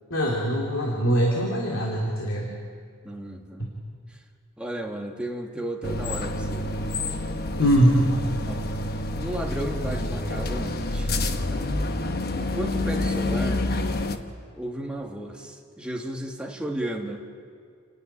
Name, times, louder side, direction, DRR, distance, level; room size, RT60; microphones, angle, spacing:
voice 1, 0.1-2.5 3.6-3.7 7.6-8.0, equal, 70° left, -2 dB, 2.7 m, -22 dB
voice 2, 3.0-3.8 4.1-4.2 4.6-6.9 7.6-7.7 8.4-8.7 9.2-11.1 11.5-11.8 12.3-13.6 14.6-17.2, right 1 dB, 5° right, 1 dB, 1.7 m, -34 dB
sound 1, 5.8-14.2, left 2 dB, 50° left, 1.0 m, -28 dB
28.0 x 10.5 x 9.9 m, 2.1 s
head